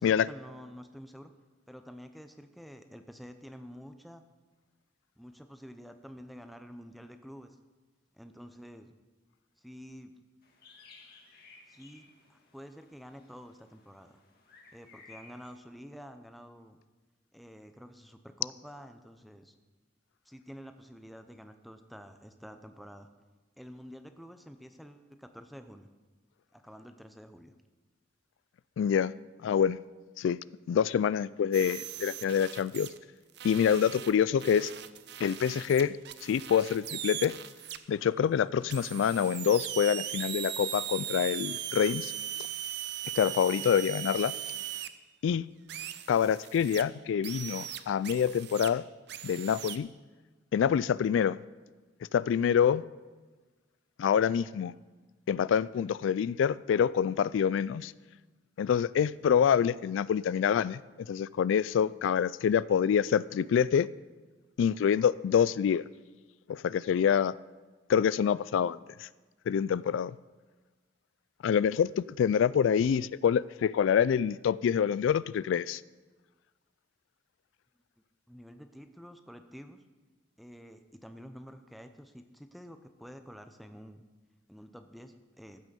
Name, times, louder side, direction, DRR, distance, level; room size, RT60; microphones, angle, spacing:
voice 1, 0.0-1.3 1.7-4.2 5.2-7.6 8.2-8.9 9.6-10.1 11.7-14.2 14.7-16.8 17.3-19.6 20.3-23.1 23.6-25.9 26.5-27.5 78.3-79.8 80.4-84.0 84.5-85.6, equal, ahead, 0.7 m, -49 dB
sound 1, 10.4-15.6, left 4 dB, 55° left, 1.7 m, -57 dB
voice 2, 28.8-29.1 29.4-29.8 30.2-30.4 30.7-32.9 33.4-34.7 35.2-36.0 36.2-37.3 37.9-42.1 43.2-44.3 45.2-45.5 46.1-48.8 49.2-49.9 50.5-51.4 52.1-52.8 54.0-54.7 55.3-57.9 58.6-63.9 64.6-65.8 66.5-67.3 67.9-69.1 69.5-70.2 71.4-75.8, left 8 dB, 90° left, 0.3 m, -26 dB
sound 2, 31.5-33.0 33.4-37.8 38.7-44.9 45.7-46.8 47.2-48.7 49.1-49.8, right 12 dB, 60° right, 0.6 m, -39 dB
14.5 x 6.2 x 6.9 m
head